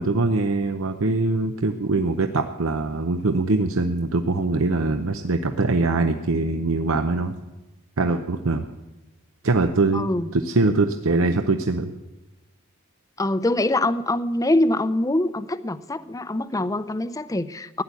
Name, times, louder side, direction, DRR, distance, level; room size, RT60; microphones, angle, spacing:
voice 1, 0.0-7.3 8.0-8.7 9.4-11.9, right 3 dB, 75° right, 7 dB, 0.8 m, -23 dB
voice 2, 9.9-10.3 13.2-17.8, left 1 dB, 15° left, 14 dB, 0.5 m, -24 dB
15.5 x 10.5 x 8.3 m, 1.1 s
head